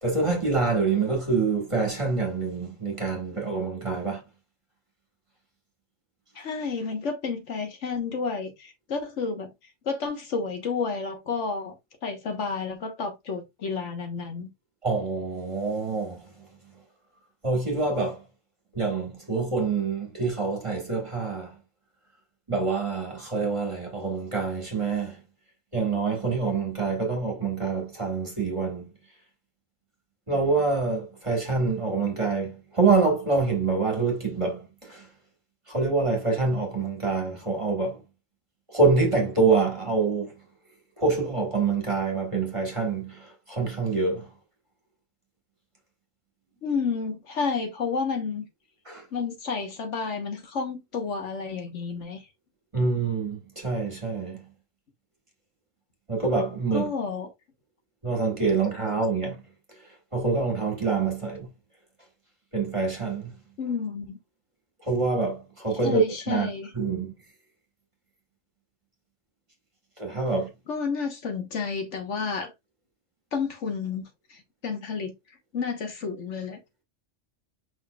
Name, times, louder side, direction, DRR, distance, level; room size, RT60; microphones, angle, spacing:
voice 1, 0.0-4.2 14.8-16.3 17.4-18.2 18.7-21.5 22.5-25.2 25.7-28.9 30.3-35.1 35.7-38.0 38.7-40.3 41.0-44.3 48.9-49.0 52.7-54.4 56.1-56.9 58.0-59.3 60.1-61.5 62.5-63.3 64.8-66.5 66.7-67.1 70.0-70.5, right 4 dB, 25° right, 1.4 m, -26 dB
voice 2, 6.3-9.5 9.8-11.7 12.0-14.5 46.6-48.5 49.1-52.2 56.7-57.3 63.6-64.2 65.8-66.7 70.7-72.5 73.3-75.1 75.5-76.6, left 5 dB, 75° left, 1.5 m, -31 dB
5.2 x 4.4 x 2.3 m
omnidirectional pair, 1.2 m